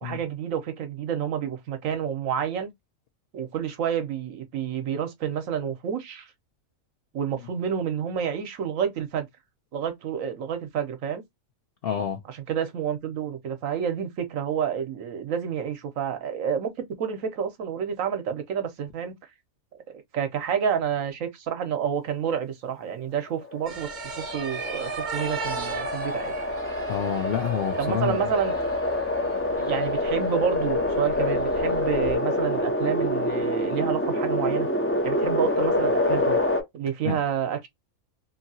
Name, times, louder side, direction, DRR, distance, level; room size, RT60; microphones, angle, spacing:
voice 1, 0.0-2.7 3.3-6.3 7.1-9.3 9.7-11.2 12.3-19.1 19.9-26.3 27.8-28.5 29.6-34.7 35.0-36.4 36.7-37.7, right 8 dB, 70° right, 1.1 m, -29 dB
voice 2, 11.8-12.2 26.9-28.2 37.0-37.2, left 9 dB, 60° left, 0.6 m, -28 dB
sound 1, 23.4-36.6, left 1 dB, 20° left, 0.3 m, -26 dB
sound 2, 23.6-32.1, right 5 dB, 50° right, 0.5 m, -39 dB
2.9 x 2.7 x 2.6 m
omnidirectional pair, 1.5 m